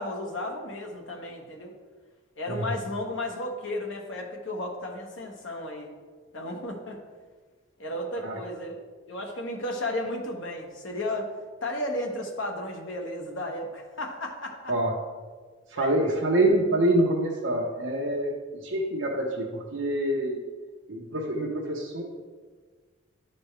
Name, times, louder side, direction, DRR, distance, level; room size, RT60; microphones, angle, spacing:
voice 1, 0.0-1.7 2.4-5.9 6.3-7.0 7.8-8.8 9.1-11.3 11.6-14.7 15.7-15.9, left 1 dB, 65° left, 1 dB, 1.3 m, -33 dB
voice 2, 15.7-18.3 18.6-20.4 20.9-22.0, right 1 dB, 65° right, -3 dB, 0.9 m, -26 dB
12.0 x 4.3 x 3.3 m, 1.4 s
head